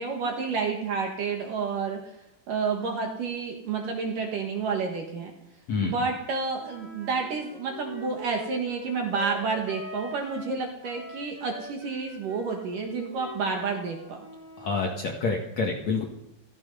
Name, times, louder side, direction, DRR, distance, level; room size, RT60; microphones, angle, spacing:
voice 1, 0.0-2.0 2.5-5.3 5.8-14.2, right 5 dB, 60° right, 2 dB, 2.6 m, -30 dB
Wind instrument woodwind instrument, 6.6-10.5 10.8-14.8, left 1 dB, 5° right, 2.7 m, -43 dB
voice 2, 14.6-16.0, left 4 dB, 50° left, 0 dB, 2.3 m, -27 dB
16.0 x 15.0 x 5.5 m, 0.86 s
omnidirectional pair, 5.3 m